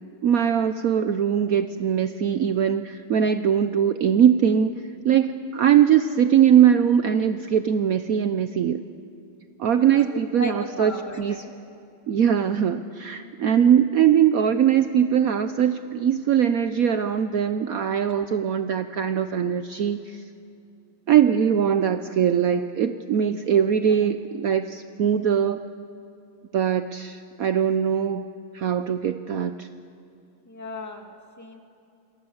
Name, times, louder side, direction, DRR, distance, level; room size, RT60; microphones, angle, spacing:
voice 1, 0.2-4.7 5.0-8.8 9.6-10.9 11.2-11.4 12.1-20.2 21.1-25.6 26.5-28.3 28.5-29.7, right 8 dB, 65° right, 9 dB, 0.8 m, -21 dB
voice 2, 9.7-11.5 13.4-13.6 18.1-18.2 30.5-31.6, left 1 dB, 10° left, 3 dB, 2.1 m, -37 dB
30.0 x 27.0 x 7.2 m, 2.7 s
omnidirectional pair, 2.4 m